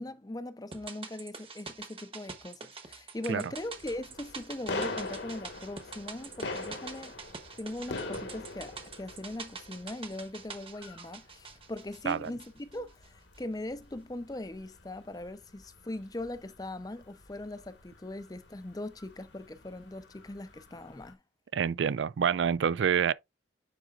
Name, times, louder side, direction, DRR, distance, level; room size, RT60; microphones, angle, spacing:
voice 1, 0.0-7.1 7.6-21.2, left 1 dB, 20° left, 0.5 m, -40 dB
sound 1, 0.7-13.1 13.3-13.4, right 5 dB, 30° right, 1.1 m, -46 dB
sound 2, 3.2-21.1, left 2 dB, 70° left, 1.6 m, -44 dB
voice 2, 21.5-23.1, right 7 dB, 75° right, 0.4 m, -27 dB
9.2 x 4.9 x 2.4 m
head